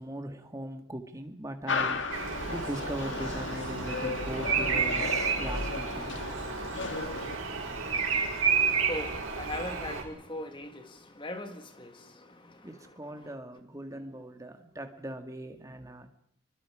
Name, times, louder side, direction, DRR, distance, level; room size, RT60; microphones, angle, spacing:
voice 1, 0.0-6.2 12.6-16.1, right 1 dB, 15° right, 1.8 m, -40 dB
sound 1, 1.7-7.4, left 3 dB, 65° left, 1.8 m, -35 dB
Bird vocalization bird call bird song, 2.1-10.0, right 5 dB, 75° right, 5.1 m, -31 dB
voice 2, 7.9-13.3, left 1 dB, 25° left, 1.8 m, -41 dB
27.0 x 24.0 x 4.9 m
head